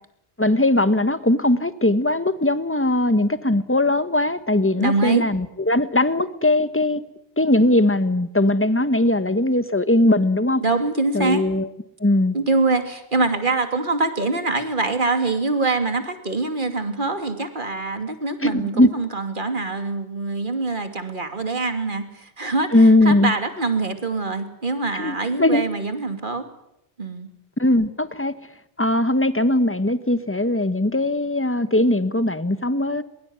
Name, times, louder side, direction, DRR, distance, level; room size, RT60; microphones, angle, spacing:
voice 1, 0.4-7.0 7.4-10.6 11.1-11.7 12.0-12.3 18.4-18.9 22.7-23.3 24.9-25.6 27.6-28.3 28.8-33.0, left 1 dB, 10° left, 13 dB, 1.2 m, -19 dB
voice 2, 4.7-5.3 10.6-11.4 12.3-22.7 23.0-26.4 27.0-27.3, right 3 dB, 45° right, 8 dB, 2.9 m, -24 dB
23.0 x 22.5 x 9.6 m, 0.81 s
omnidirectional pair, 1.1 m